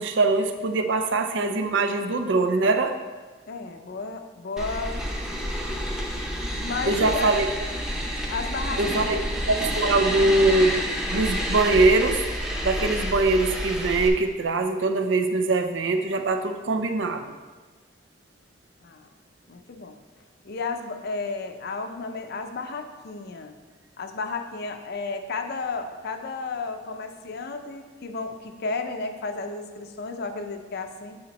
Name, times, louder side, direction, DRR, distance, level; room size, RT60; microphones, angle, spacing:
voice 1, 0.0-2.9 6.9-7.5 8.8-9.2 9.5-10.8 11.1-12.2 12.6-17.2, right 3 dB, 70° right, 6 dB, 0.5 m, -22 dB
voice 2, 3.5-5.7 6.6-7.3 8.3-9.2 18.8-19.1 19.5-20.0 20.4-23.5 24.0-31.2, left 3 dB, 60° left, 6 dB, 0.6 m, -33 dB
sound 1, 4.6-14.1, equal, 5° right, 0.8 m, -29 dB
8.8 x 4.2 x 4.1 m, 1.3 s
head